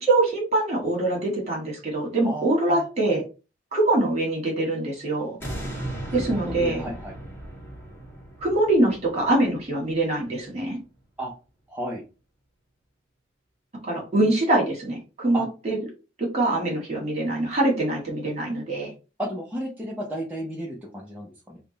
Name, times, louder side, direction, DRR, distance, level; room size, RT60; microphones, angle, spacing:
voice 1, 0.0-3.2 3.7-5.4 6.1-6.9 8.4-10.8 13.8-15.8 16.2-18.9, right 2 dB, 35° right, -1 dB, 1.6 m, -24 dB
voice 2, 2.2-3.2 6.1-7.1 11.2-11.3 11.7-12.0 15.3-15.4 19.2-21.6, equal, 10° right, -5 dB, 0.7 m, -33 dB
sound 1, 5.4-10.5 11.0-11.1, right 1 dB, 10° left, 1.4 m, -37 dB
3.6 x 2.2 x 4.0 m, 0.31 s
head